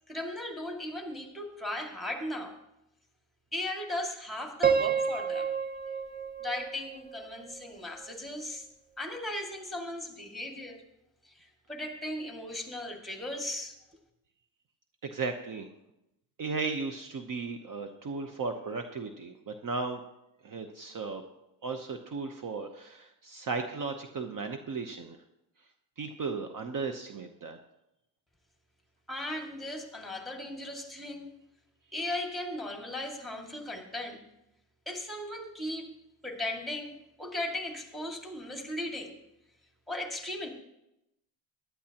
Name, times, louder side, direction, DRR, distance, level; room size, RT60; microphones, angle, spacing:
voice 1, 0.1-2.6 3.5-5.5 6.4-8.7 9.0-10.8 11.3-13.7 29.1-31.3 31.9-34.2 34.9-35.9 36.2-39.2 39.9-40.5, left 1 dB, ahead, 2 dB, 2.2 m, -37 dB
Piano, 4.6-7.6, right 6 dB, 20° right, 0.6 m, -30 dB
voice 2, 15.0-15.7 16.4-20.0 20.4-21.2 21.6-25.2 26.0-27.6, right 4 dB, 45° right, 6 dB, 1.0 m, -35 dB
15.0 x 11.0 x 2.9 m, 0.87 s
cardioid pair, 95°, 46 cm